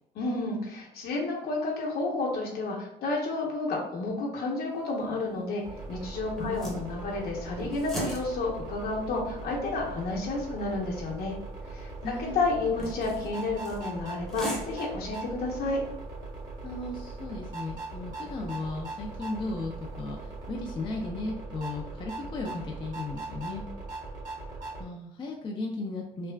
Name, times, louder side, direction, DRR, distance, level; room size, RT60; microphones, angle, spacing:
voice 1, 0.1-5.6 5.9-11.3 11.7-15.8, left 3 dB, 65° left, -2 dB, 0.9 m, -31 dB
sound 1, 4.7-20.5, equal, ahead, 0.8 m, -44 dB
sound 2, 5.6-24.9, right 3 dB, 50° right, 1.2 m, -40 dB
voice 2, 6.4-6.8 12.0-12.4 16.6-20.2 20.5-23.6 24.8-26.3, left 2 dB, 30° left, -1 dB, 0.4 m, -36 dB
3.3 x 2.4 x 2.2 m, 0.86 s
cardioid pair, 110°, 17 cm